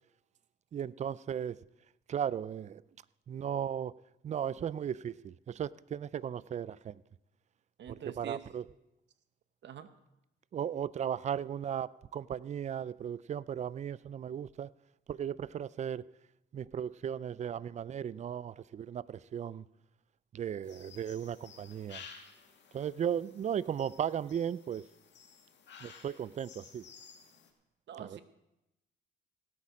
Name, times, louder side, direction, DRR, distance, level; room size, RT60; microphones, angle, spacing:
voice 1, 0.7-1.6 2.1-2.8 3.3-3.9 4.2-7.0 7.9-8.7 10.5-14.7 15.1-16.1 16.5-19.6 20.3-22.0 22.7-24.8 25.8-26.8 28.0-28.2, right 9 dB, 35° right, 0.4 m, -36 dB
voice 2, 7.8-8.4 9.6-9.9 27.9-28.2, right 9 dB, 65° right, 0.9 m, -44 dB
sound 1, 20.6-27.5, left 6 dB, 65° left, 2.0 m, -54 dB
17.5 x 8.5 x 5.0 m
cardioid pair, 90°, 20 cm